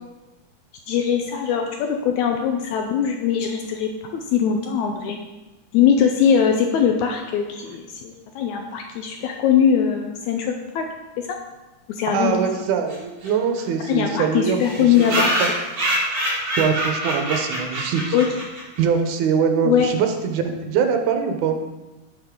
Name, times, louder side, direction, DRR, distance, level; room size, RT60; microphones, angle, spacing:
voice 1, 0.9-5.2 5.7-10.8 11.2-11.4 11.9-12.4 13.8-15.3 18.1-18.3 19.6-19.9, left 8 dB, 80° left, 4 dB, 1.8 m, -21 dB
voice 2, 12.1-15.1 15.4-15.5 16.6-18.2 18.8-21.6, right 6 dB, 75° right, 5 dB, 2.1 m, -23 dB
sound 1, 12.9-13.0 13.2-13.3 13.6-13.7 13.9-14.0 14.6-18.8, right 1 dB, 40° right, 2.0 m, -25 dB
6.8 x 5.8 x 3.6 m, 1.1 s
omnidirectional pair, 3.6 m